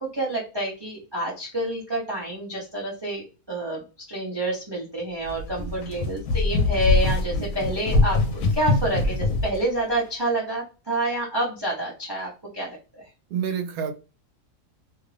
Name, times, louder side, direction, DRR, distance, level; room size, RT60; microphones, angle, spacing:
voice 1, 0.0-3.8 4.1-13.0, right 1 dB, 25° right, 0.6 m, -28 dB
sound 1, 5.2-9.6, left 3 dB, 70° left, 1.0 m, -23 dB
voice 2, 5.6-5.9 7.3-7.7 13.3-13.9, right 7 dB, 85° right, 1.1 m, -30 dB
2.7 x 2.5 x 3.2 m
omnidirectional pair, 1.5 m